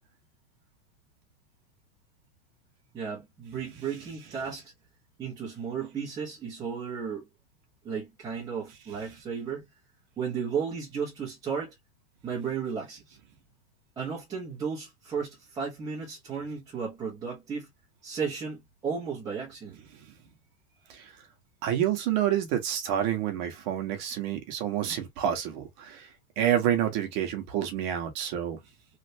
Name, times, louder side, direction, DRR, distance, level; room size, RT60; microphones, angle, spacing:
voice 1, 2.9-4.7 5.2-7.3 7.8-9.7 10.2-11.7 12.2-13.2 14.0-17.7 18.0-19.8, right 6 dB, 10° right, 0.7 m, -34 dB
voice 2, 21.6-26.1 26.4-28.6, right 10 dB, 30° right, 0.9 m, -28 dB
3.2 x 2.5 x 2.6 m
supercardioid pair, 165°, 44 cm